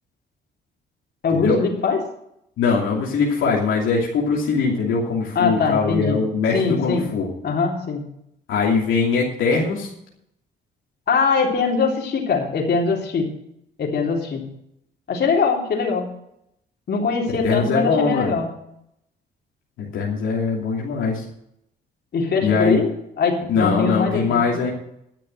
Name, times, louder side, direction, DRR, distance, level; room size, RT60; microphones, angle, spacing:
voice 1, 1.2-2.0 5.4-6.2 6.5-7.1 7.4-8.0 11.1-13.3 13.8-14.4 15.1-16.1 16.9-18.5 22.1-24.4, left 4 dB, 55° left, 0 dB, 3.5 m, -22 dB
voice 2, 2.6-7.3 8.5-9.9 17.3-18.3 19.8-21.2 22.4-22.8 23.5-24.7, left 5 dB, 80° left, -3 dB, 2.8 m, -21 dB
12.0 x 6.8 x 9.1 m, 0.76 s
cardioid pair, 90°, 20 cm